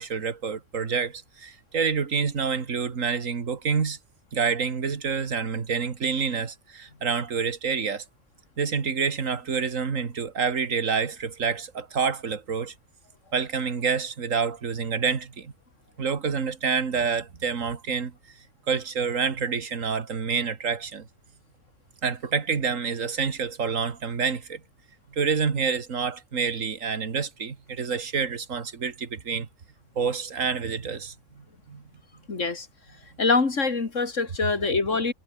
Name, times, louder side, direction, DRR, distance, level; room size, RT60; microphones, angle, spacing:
voice 1, 0.0-4.0 4.3-8.0 8.6-12.7 13.3-15.5 16.0-18.1 18.7-21.1 22.0-24.6 25.1-29.5 30.0-31.8, right 6 dB, 75° right, 2.2 m, -28 dB
voice 2, 32.3-32.7 33.2-35.1, left 4 dB, 65° left, 2.9 m, -24 dB
omnidirectional pair, 1.4 m